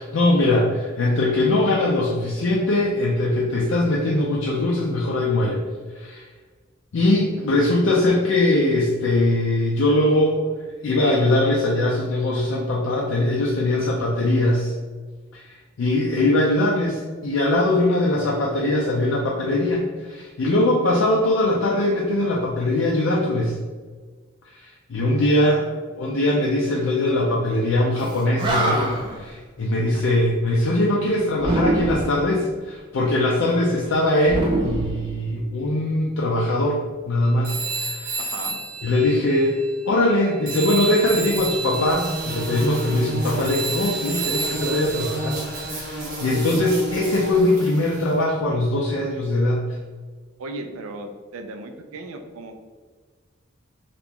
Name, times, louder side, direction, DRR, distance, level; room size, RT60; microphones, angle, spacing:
voice 1, 0.0-5.6 5.9-6.2 6.9-10.5 10.8-14.7 15.3-23.6 24.5-25.6 26.0-36.8 37.1-37.5 37.8-38.2 38.8-49.6, left 1 dB, 70° left, -2 dB, 0.4 m, -21 dB
voice 2, 25.0-25.7 29.8-30.0 38.2-38.6 50.4-52.6, right 2 dB, 90° right, 6 dB, 0.4 m, -37 dB
Animal, 28.1-28.2 28.4-29.2 31.4-32.2 34.2-35.6, right 2 dB, 20° right, 0.4 m, -24 dB
Telephone, 37.4-40.2 40.5-45.7, right 4 dB, 65° right, 0.9 m, -31 dB
sound 1, 41.0-48.1, right 1 dB, 40° right, 0.8 m, -32 dB
2.9 x 2.4 x 3.5 m, 1.5 s
head